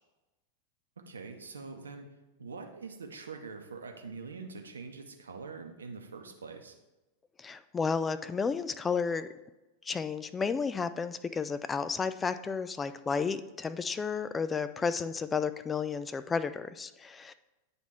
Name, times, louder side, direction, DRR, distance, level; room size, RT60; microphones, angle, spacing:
voice 1, 1.1-2.1 2.4-6.7, right 4 dB, 70° right, 5 dB, 0.8 m, -44 dB
voice 2, 7.4-9.3 9.8-17.3, left 5 dB, 15° left, 12 dB, 0.3 m, -32 dB
9.0 x 3.5 x 4.3 m, 1.0 s
figure-of-eight pair, 90°, 0 cm